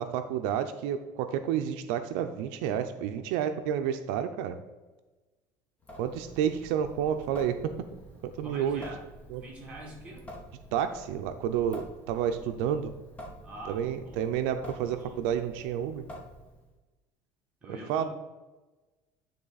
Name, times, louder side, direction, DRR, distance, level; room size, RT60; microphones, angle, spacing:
voice 1, 0.0-4.6 6.0-7.7 8.4-8.8 9.3-9.4 10.7-12.9 13.7-16.0 17.9-18.0, right 9 dB, 80° right, 8 dB, 0.5 m, -30 dB
Water tap faucet / Sink (filling or washing) / Drip, 5.8-16.7, equal, 15° left, 1.1 m, -48 dB
voice 2, 8.4-9.1 9.4-10.3 13.4-14.3 14.8-15.2 17.6-18.1, right 1 dB, 15° right, -4 dB, 2.0 m, -45 dB
10.0 x 3.4 x 4.0 m, 1.2 s
cardioid pair, 155°, 9 cm